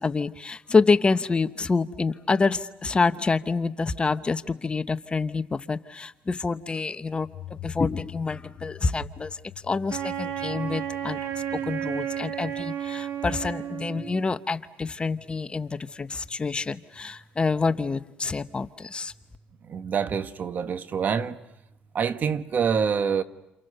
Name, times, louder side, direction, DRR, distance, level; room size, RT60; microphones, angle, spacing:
voice 1, 0.0-9.4 9.6-11.2 11.6-19.1, left 4 dB, 25° left, 1.0 m, -27 dB
sound 1, 7.2-13.7, left 14 dB, 55° left, 4.5 m, -46 dB
Wind instrument woodwind instrument, 9.9-14.3, right 10 dB, 80° right, 2.5 m, -32 dB
voice 2, 19.6-21.4 21.9-23.2, right 6 dB, 50° right, 1.3 m, -26 dB
29.5 x 28.5 x 6.8 m
cardioid pair, 85°, 4 cm